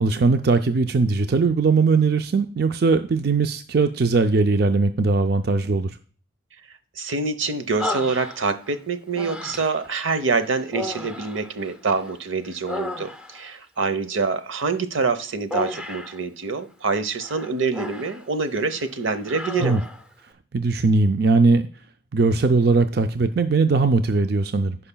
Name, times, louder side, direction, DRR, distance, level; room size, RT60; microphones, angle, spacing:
voice 1, 0.0-6.0 19.6-19.8 20.5-21.7 22.1-24.8, right 3 dB, 55° right, 8 dB, 0.5 m, -20 dB
voice 2, 7.0-19.8, right 4 dB, 90° right, 11 dB, 0.9 m, -26 dB
Human voice, 7.8-8.7 9.1-9.9 10.7-12.1 12.4-13.5 15.5-16.2 17.2-18.2 18.6-18.8 19.2-20.0, left 1 dB, 5° right, 0.6 m, -33 dB
15.5 x 5.6 x 2.2 m, 0.40 s
head